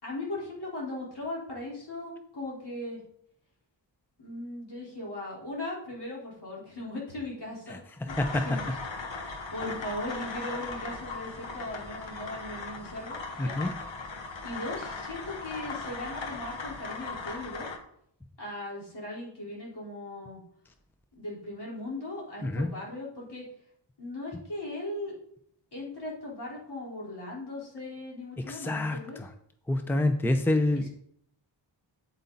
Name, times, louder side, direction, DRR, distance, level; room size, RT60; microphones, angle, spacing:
voice 1, 0.0-3.0 4.2-8.1 8.4-8.6 9.2-13.6 14.4-17.7 18.4-20.4 21.1-23.4 24.0-25.1 25.7-29.2, left 1 dB, 60° left, -5 dB, 4.4 m, -38 dB
sound 1, 8.1-17.8, left 3 dB, 80° left, 1.5 m, -38 dB
voice 2, 8.2-8.5 13.4-13.8 22.4-22.7 28.4-29.3 29.7-30.9, left 2 dB, 5° left, 7 dB, 0.7 m, -27 dB
8.4 x 8.3 x 4.1 m, 0.68 s
wide cardioid pair, 85°, 45 cm